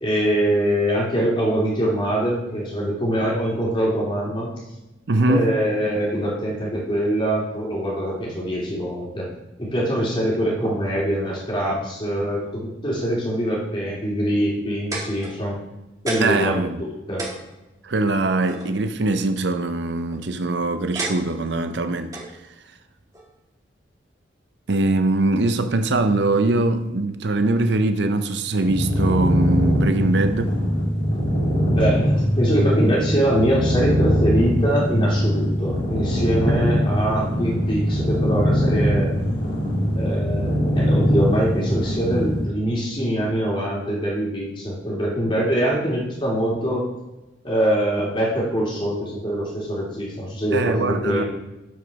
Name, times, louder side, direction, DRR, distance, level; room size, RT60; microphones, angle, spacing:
voice 1, 0.0-4.5 5.2-9.3 9.6-15.6 16.0-17.3 31.7-39.1 39.9-46.9 47.4-51.2, equal, 25° left, 2.7 m, -23 dB
voice 2, 5.1-5.5 16.2-16.8 17.8-22.2 24.7-30.6 36.5-36.6 50.5-51.2, right 2 dB, 70° right, 0.6 m, -22 dB
sound 1, 14.5-15.7 16.1-16.5 16.8-16.9 17.2-18.7 19.8-20.2 21.0-21.6 22.1-22.3 23.1-23.3, right 2 dB, 20° right, 1.6 m, -32 dB
sound 2, 28.6-42.4, equal, 65° left, 2.7 m, -21 dB
8.1 x 5.1 x 5.8 m
head